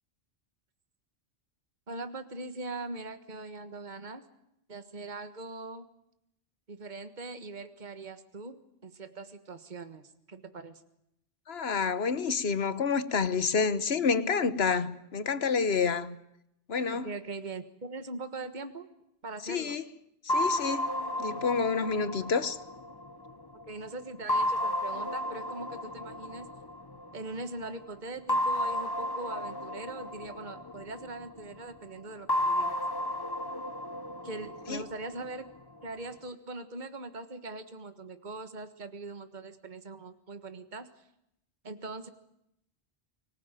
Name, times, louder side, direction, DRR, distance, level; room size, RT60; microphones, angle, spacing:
voice 1, 1.9-4.2 4.7-5.9 6.7-10.8 16.9-18.9 19.2-19.8 22.4-22.5 23.7-26.5 27.1-32.8 34.2-35.5 35.8-40.9 41.6-42.1, right 3 dB, 45° right, 1.7 m, -41 dB
voice 2, 11.5-16.2 16.7-17.1 19.4-19.8 20.2-20.9 21.2-22.6 34.7-34.8, left 5 dB, 75° left, 1.4 m, -28 dB
sound 1, 20.3-23.6 24.3-27.2 28.3-31.4 32.3-35.4, left 1 dB, 20° left, 1.1 m, -33 dB
25.0 x 18.5 x 9.1 m
omnidirectional pair, 1.1 m